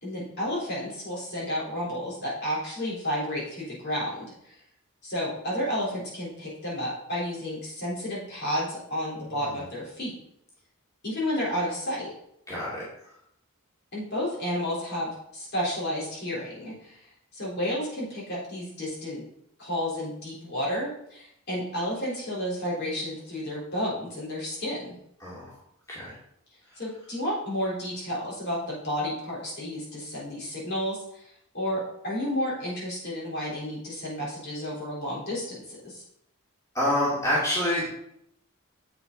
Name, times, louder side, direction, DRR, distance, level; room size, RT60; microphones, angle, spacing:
voice 1, 0.0-4.6 5.0-10.1 11.0-12.1 13.9-19.2 19.6-24.9 26.8-36.0, equal, 50° left, -6 dB, 3.8 m, -31 dB
voice 2, 9.3-9.6 12.5-12.8 25.2-25.6 25.9-26.2 36.7-37.8, left 1 dB, 15° left, -9 dB, 2.5 m, -27 dB
8.1 x 7.0 x 4.0 m, 0.74 s
head